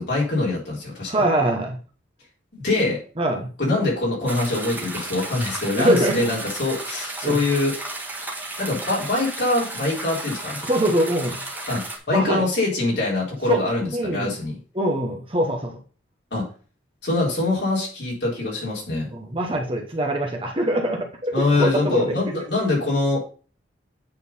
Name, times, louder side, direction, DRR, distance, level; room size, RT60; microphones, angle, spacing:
voice 1, 0.0-1.2 2.5-3.0 3.6-7.7 8.6-10.6 11.7-14.5 16.3-16.5 17.0-19.1 21.3-23.2, left 2 dB, 65° left, -4 dB, 3.8 m, -24 dB
voice 2, 1.1-1.8 3.2-3.5 5.8-6.2 7.2-7.4 10.6-11.4 12.1-12.4 13.5-13.6 13.9-14.3 14.7-15.8 19.1-22.2, right 1 dB, 30° right, 2 dB, 1.0 m, -23 dB
sound 1, 4.3-12.0, right 2 dB, 10° right, 1.6 m, -33 dB
8.7 x 3.9 x 5.4 m, 0.39 s
head